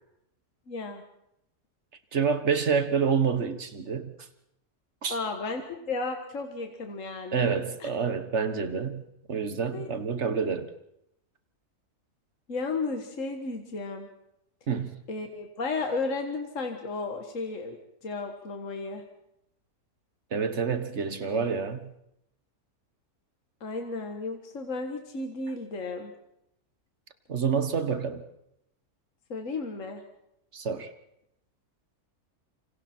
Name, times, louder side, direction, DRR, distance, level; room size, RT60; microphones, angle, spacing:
voice 1, 0.7-1.0 5.1-7.5 7.8-7.9 9.7-9.9 12.5-14.1 15.1-17.8 18.0-19.0 21.2-21.5 23.6-26.1 29.3-30.0, left 3 dB, 60° left, 4 dB, 2.0 m, -34 dB
voice 2, 2.1-4.1 5.0-5.2 7.3-10.7 14.7-15.0 20.3-21.9 27.3-28.2 30.5-30.9, right 6 dB, 50° right, 10 dB, 1.6 m, -28 dB
27.5 x 26.0 x 4.4 m, 0.78 s
omnidirectional pair, 1.5 m